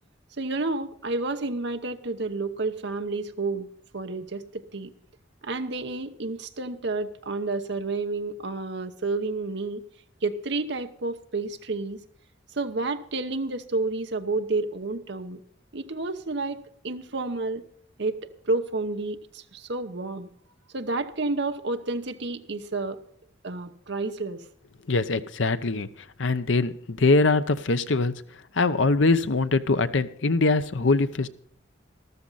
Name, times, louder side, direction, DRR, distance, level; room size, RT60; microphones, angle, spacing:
voice 1, 0.4-3.7 3.9-4.9 5.4-9.8 10.2-12.0 12.5-15.4 15.7-17.6 18.0-20.3 20.7-23.0 23.4-24.4, right 3 dB, 65° right, 8 dB, 1.0 m, -30 dB
voice 2, 24.9-25.9 26.2-28.1 28.5-31.3, left 3 dB, 80° left, 12 dB, 0.8 m, -22 dB
13.5 x 13.0 x 4.1 m, 0.65 s
head